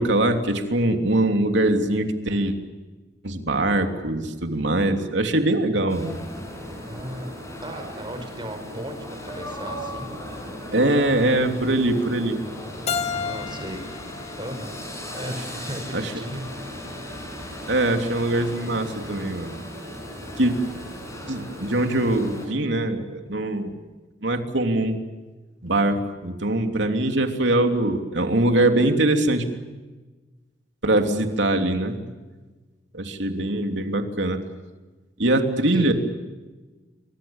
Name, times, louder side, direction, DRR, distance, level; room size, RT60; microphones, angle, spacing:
voice 1, 0.0-2.6 3.2-6.2 10.7-12.4 15.9-16.0 17.7-19.5 20.4-20.5 21.3-23.8 24.2-25.0 25.6-29.4 30.8-32.0 32.9-34.4 35.2-35.9, right 1 dB, 70° right, 5 dB, 3.2 m, -22 dB
sound 1, 5.9-22.5, left 1 dB, 15° left, 7.1 m, -37 dB
voice 2, 6.8-7.3 7.6-10.1 13.1-13.8 14.4-14.8 15.1-16.4 35.5-35.9, equal, 25° right, 6 dB, 5.4 m, -36 dB
Keyboard (musical), 12.9-15.7, left 6 dB, 35° left, 1.1 m, -32 dB
29.0 x 25.0 x 7.3 m, 1.2 s
head